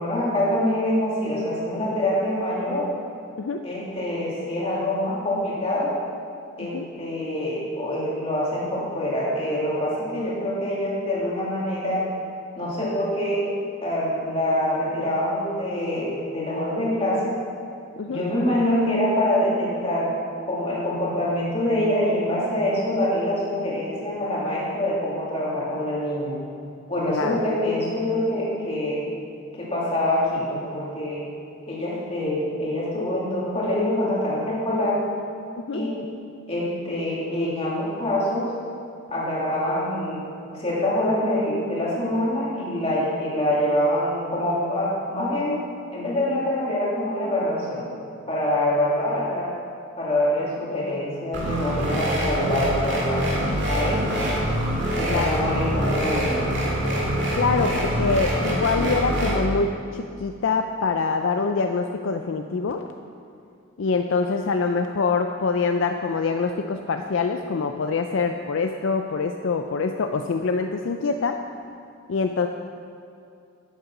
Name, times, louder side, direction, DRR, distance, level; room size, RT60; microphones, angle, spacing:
voice 1, 0.0-2.9 3.6-5.9 6.6-12.1 12.6-13.5 13.8-17.4 18.1-20.1 20.5-26.4 26.9-29.0 29.6-31.2 31.7-35.0 35.7-36.1 36.5-38.5 39.1-40.2 40.5-45.6 45.9-47.9 48.3-49.5 50.0-53.3 53.6-54.3 55.0-56.5, left 1 dB, 30° left, -6 dB, 2.4 m, -25 dB
sound 1, 51.3-59.3, right 1 dB, 55° right, 2.3 m, -25 dB
voice 2, 57.3-62.8 63.8-71.4 72.1-72.5, left 4 dB, 60° left, 5 dB, 0.4 m, -25 dB
8.7 x 8.2 x 5.9 m, 2.5 s
head